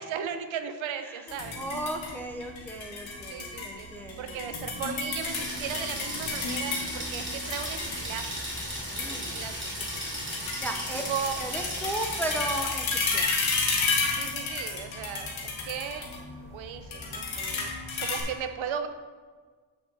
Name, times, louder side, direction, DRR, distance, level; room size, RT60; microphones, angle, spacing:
voice 1, 0.0-1.6 3.3-3.9 4.2-8.5 9.0-10.0 11.1-11.4 11.7-11.9 14.1-16.1 16.4-18.9, right 7 dB, 80° right, 8 dB, 0.8 m, -37 dB
sound 1, 1.3-18.2, left 4 dB, 90° left, 1.9 m, -33 dB
voice 2, 1.6-4.4 8.7-9.4 10.5-11.1 11.4-13.3, right 1 dB, 5° left, 3 dB, 0.4 m, -35 dB
sound 2, 5.2-12.6, equal, 25° right, 2.1 m, -36 dB
7.8 x 6.1 x 4.0 m, 1.5 s
wide cardioid pair, 170°, 46 cm